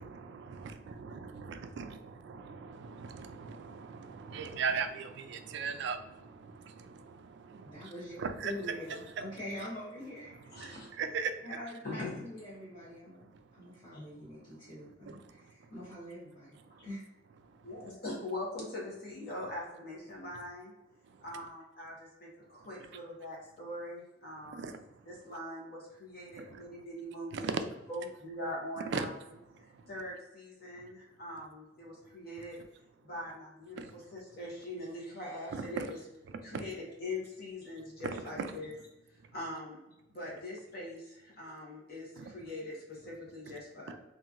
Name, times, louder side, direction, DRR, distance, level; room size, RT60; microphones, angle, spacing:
voice 1, 0.0-9.4 10.2-11.6 13.1-15.8 16.5-16.9 17.4-17.9 20.1-20.5 21.0-21.5 22.4-23.0 24.4-25.3 26.3-26.8 27.3-27.9 28.8-29.1 29.5-30.0 30.6-30.9 31.9-32.5 33.8-34.2 35.5-36.0 36.3-36.7 37.8-38.8 39.2-39.4 42.2-42.5 43.0-43.1 43.5-43.6 43.9-44.0, right 5 dB, 60° right, 9 dB, 0.3 m, -41 dB
voice 2, 7.6-8.1 8.4-10.6 11.4-13.2 13.5-17.1, left 1 dB, 30° left, -10 dB, 0.9 m, -44 dB
voice 3, 10.5-10.9 11.8-12.2 13.9-14.2 16.7-16.8 17.6-20.7 21.2-24.6 25.1-27.4 27.9-29.1 29.6-32.6 33.0-33.8 34.1-36.0 36.4-38.7 39.3-39.8 40.1-43.9, left 1 dB, 55° left, -4 dB, 1.0 m, -42 dB
2.9 x 2.5 x 2.4 m, 0.92 s
head